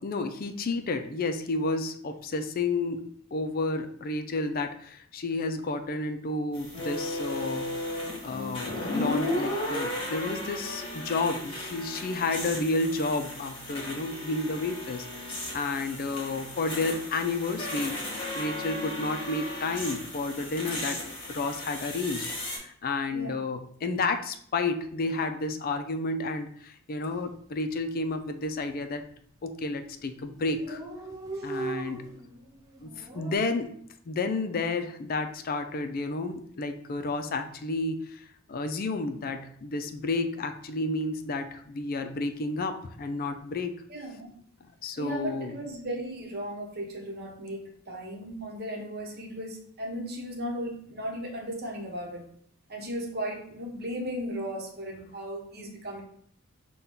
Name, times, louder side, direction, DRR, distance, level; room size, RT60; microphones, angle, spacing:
voice 1, 0.0-7.7 8.2-18.0 18.4-21.0 21.3-29.0 29.4-30.8 31.4-32.0 32.8-33.7 34.1-43.7 44.8-45.5, left 3 dB, 45° left, 8 dB, 0.4 m, -31 dB
sound 1, 6.5-22.6, left 1 dB, 25° left, 1.3 m, -35 dB
voice 2, 23.1-23.4 31.3-31.5 43.9-44.3 45.0-52.2 52.7-56.0, equal, 50° right, 1 dB, 1.0 m, -36 dB
Dog, 27.1-27.4 27.7-27.8 28.0-28.7 29.3-29.6 29.9-30.0 30.2-30.3 30.4-33.4, right 3 dB, 20° right, 0.6 m, -39 dB
5.6 x 2.3 x 3.7 m, 0.64 s
head